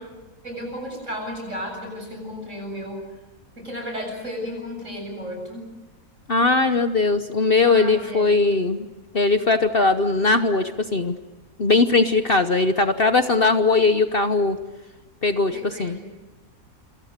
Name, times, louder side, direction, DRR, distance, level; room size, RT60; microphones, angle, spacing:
voice 1, 0.4-3.0 3.6-5.7 7.7-8.4 15.5-16.1, equal, 55° right, 3 dB, 8.3 m, -33 dB
voice 2, 6.3-8.9 9.1-11.2 11.6-14.6 15.2-16.1, left 3 dB, 45° left, 9 dB, 1.1 m, -20 dB
27.5 x 26.5 x 6.7 m, 1.2 s
omnidirectional pair, 1.5 m